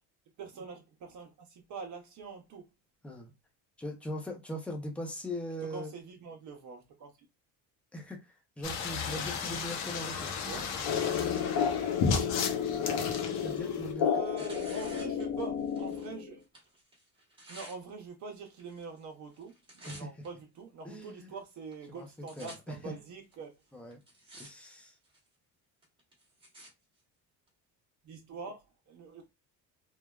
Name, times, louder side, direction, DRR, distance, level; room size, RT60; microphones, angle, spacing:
voice 1, 0.4-2.6 5.7-7.3 10.5-10.7 14.0-16.4 17.5-23.5 28.0-29.2, right 4 dB, 50° right, 0.7 m, -44 dB
voice 2, 3.8-5.9 7.9-10.3 13.3-14.1 19.9-20.1 20.8-21.3 21.9-22.8 23.7-24.0 24.3-24.9, equal, 5° left, 0.5 m, -40 dB
sound 1, 8.6-13.9, left 5 dB, 75° left, 0.8 m, -34 dB
sound 2, 10.9-16.4, left 7 dB, 55° left, 0.5 m, -32 dB
Tearing, 11.0-16.1 16.4-17.8 18.5-19.0 19.3-20.3 20.9-21.0 21.7-21.8 22.0-22.6 23.3-23.4 23.9-24.5 24.8-25.3 25.8-26.7 27.5-27.6, right 1 dB, 15° right, 1.0 m, -52 dB
3.1 x 2.2 x 2.3 m
cardioid pair, 165°, 38 cm